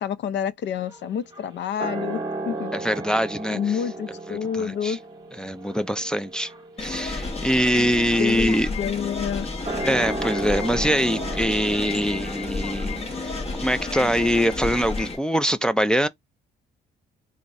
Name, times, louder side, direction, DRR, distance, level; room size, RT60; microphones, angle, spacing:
voice 1, 0.0-2.7 3.5-5.0 8.2-9.5, left 8 dB, 60° left, 0.5 m, -28 dB
sound 1, 0.8-14.6, right 2 dB, 20° right, 1.0 m, -36 dB
voice 2, 2.7-3.6 4.3-5.0 5.4-6.5 6.8-8.7 9.8-13.3 13.6-16.1, equal, 5° left, 0.3 m, -23 dB
sound 2, 6.8-15.2, left 3 dB, 30° left, 1.0 m, -31 dB
3.9 x 2.1 x 3.4 m
cardioid pair, 90°, 20 cm